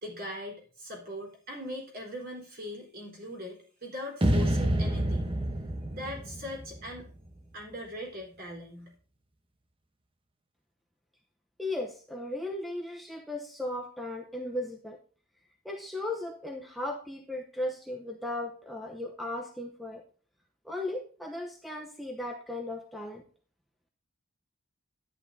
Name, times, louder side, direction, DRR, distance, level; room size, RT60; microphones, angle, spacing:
voice 1, 0.0-5.3 5.9-7.1 7.5-8.9, left 1 dB, 45° right, -1 dB, 3.9 m, -40 dB
sound 1, 4.2-7.4, right 1 dB, 25° right, 1.0 m, -28 dB
voice 2, 11.6-15.0 15.6-20.0 20.6-23.2, left 1 dB, ahead, 2 dB, 0.8 m, -36 dB
11.0 x 9.7 x 2.7 m, 0.42 s
head